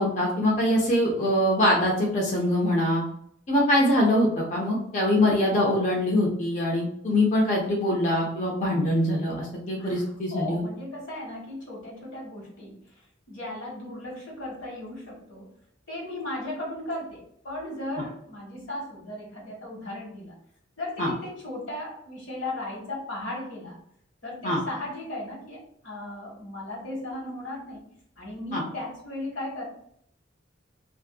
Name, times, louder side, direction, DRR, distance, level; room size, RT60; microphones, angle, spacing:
voice 1, 0.0-3.0 3.5-10.6 21.0-21.1 24.4-24.6 28.5-28.6, left 1 dB, 40° left, -2 dB, 0.5 m, -23 dB
voice 2, 9.8-12.8 13.3-15.5 15.9-20.3 20.8-23.8 24.2-27.8 28.2-29.6, left 1 dB, 80° left, -3 dB, 1.2 m, -36 dB
2.5 x 2.4 x 2.3 m, 0.69 s
head